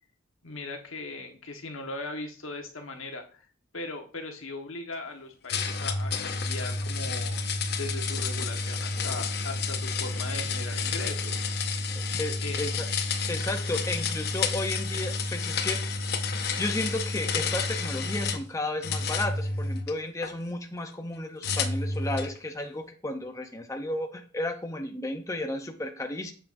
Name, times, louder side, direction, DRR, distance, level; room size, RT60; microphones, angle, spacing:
voice 1, 0.4-3.5 3.7-7.5 7.8-11.4 12.4-12.6, left 2 dB, 85° left, 4 dB, 1.3 m, -39 dB
sound 1, 5.5-18.4 18.8-20.3 21.4-22.4, left 4 dB, 50° left, 0.7 m, -30 dB
voice 2, 11.9-12.9 13.3-16.0 16.6-26.3, left 1 dB, 15° left, 4 dB, 0.6 m, -33 dB
7.5 x 7.3 x 2.6 m, 0.39 s
head